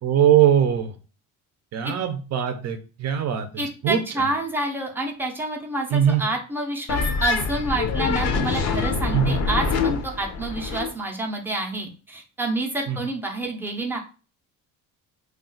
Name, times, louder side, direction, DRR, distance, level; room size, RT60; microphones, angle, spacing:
voice 1, 0.0-1.0 1.7-4.3 5.9-6.2 9.1-9.3 12.9-13.0, right 9 dB, 50° right, 7 dB, 0.6 m, -21 dB
voice 2, 3.6-14.0, right 2 dB, 5° right, 0 dB, 0.6 m, -28 dB
sound 1, 6.9-10.9, left 4 dB, 50° left, 0.6 m, -25 dB
2.4 x 2.4 x 3.8 m, 0.35 s
cardioid pair, 130°, 34 cm